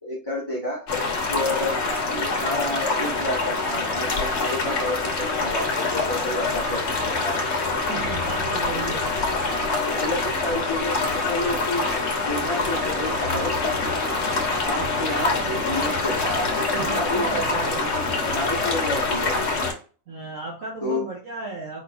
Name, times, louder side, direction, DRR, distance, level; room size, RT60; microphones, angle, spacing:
voice 1, 0.0-0.8 1.3-7.4 8.7-9.0 9.7-11.8 12.1-14.2 14.6-19.3 20.8-21.0, left 1 dB, 15° left, -8 dB, 1.4 m, -30 dB
sound 1, 0.9-19.7, left 3 dB, 55° left, 1.3 m, -25 dB
voice 2, 7.8-9.1 16.7-17.9 20.1-21.8, right 3 dB, 60° right, -4 dB, 1.6 m, -35 dB
sound 2, 12.4-17.9, right 1 dB, 15° right, 0.4 m, -40 dB
4.7 x 4.4 x 2.5 m, 0.36 s
omnidirectional pair, 1.5 m